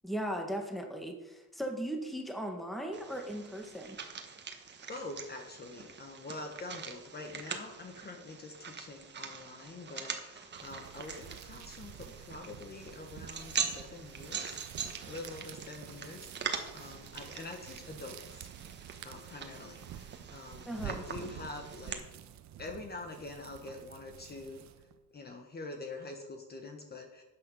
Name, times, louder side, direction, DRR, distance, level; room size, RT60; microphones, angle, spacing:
voice 1, 0.0-4.0 20.6-21.0, equal, ahead, 3 dB, 1.7 m, -37 dB
sound 1, 2.9-21.9, right 6 dB, 30° right, 1.5 m, -43 dB
voice 2, 4.6-14.7 15.0-18.5 19.0-22.0 22.6-24.6 25.1-27.2, left 2 dB, 25° left, 4 dB, 1.4 m, -45 dB
sound 2, 10.5-25.0, right 10 dB, 50° right, 1.0 m, -49 dB
12.5 x 9.1 x 5.4 m, 1.0 s
cardioid pair, 150°, 36 cm